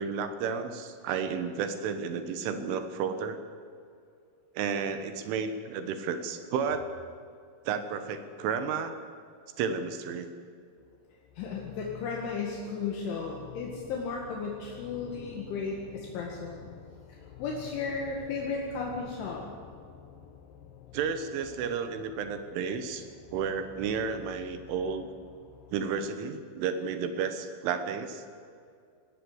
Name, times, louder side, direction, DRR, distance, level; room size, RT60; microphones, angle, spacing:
voice 1, 0.0-3.4 4.6-6.9 7.7-8.9 9.6-10.3 20.9-23.1 23.3-25.1 25.7-28.2, right 6 dB, 75° right, 9 dB, 3.6 m, -32 dB
sound 1, 10.8-26.1, left 9 dB, 85° left, 2.0 m, -50 dB
voice 2, 11.4-16.6 17.4-19.4, left 4 dB, 70° left, -1 dB, 4.2 m, -34 dB
20.0 x 18.5 x 8.0 m, 2.3 s
omnidirectional pair, 5.9 m